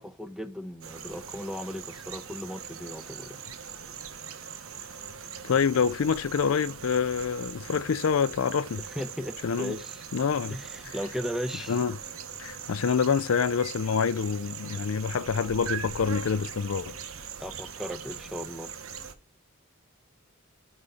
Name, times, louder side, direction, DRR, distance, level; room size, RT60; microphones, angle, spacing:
voice 1, 0.0-3.4 8.9-10.0 10.5-11.8 17.4-18.7, equal, ahead, 0.8 m, -36 dB
sound 1, 0.8-19.1, right 7 dB, 85° right, 1.1 m, -41 dB
voice 2, 5.4-8.8 9.4-9.7 10.1-10.6 10.8-10.9 11.7-12.0 12.4-17.0, left 6 dB, 85° left, 0.5 m, -26 dB
8.3 x 4.1 x 5.4 m
head